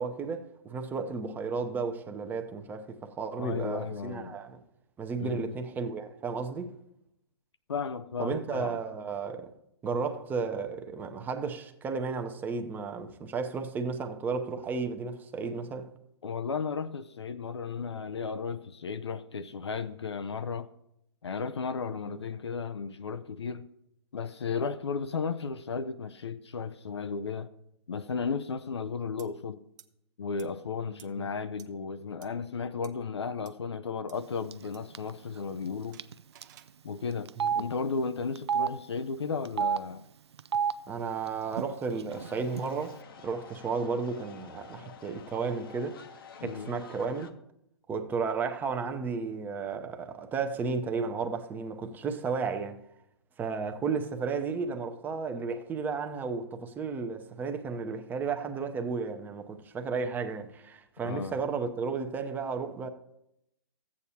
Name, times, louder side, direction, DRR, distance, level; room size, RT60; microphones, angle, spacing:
voice 1, 0.0-4.6 5.0-6.8 8.2-9.5 9.8-15.9 22.1-22.2 31.2-31.3 37.4-37.5 40.9-43.0 43.2-46.0 46.4-47.3 47.9-52.8 53.4-62.9, right 5 dB, 10° right, 0.7 m, -33 dB
voice 2, 3.4-4.4 5.2-5.5 7.7-8.8 16.2-20.7 21.2-23.7 24.1-27.5 27.9-29.6 30.2-36.0 36.8-40.0 46.4-46.7 61.0-61.4, left 5 dB, 75° left, 0.6 m, -34 dB
sound 1, 29.2-29.3 29.8-29.9 30.4-30.5 31.0-31.1 31.6-31.7 32.2-32.3 32.8-32.9 33.4-33.5 34.1-34.2 34.7-34.8 35.9-36.7, right 11 dB, 45° right, 0.7 m, -53 dB
Telephone, 34.5-34.7 35.0-35.1 36.0-36.1 36.4-36.5 37.3-37.6 38.4-38.7 39.5-39.8 40.4-40.7 41.5-41.6 41.9-42.6, right 7 dB, 70° right, 0.4 m, -28 dB
sound 2, 42.1-47.3, left 6 dB, 55° left, 1.0 m, -50 dB
14.5 x 8.5 x 2.8 m
figure-of-eight pair, 125°, 14 cm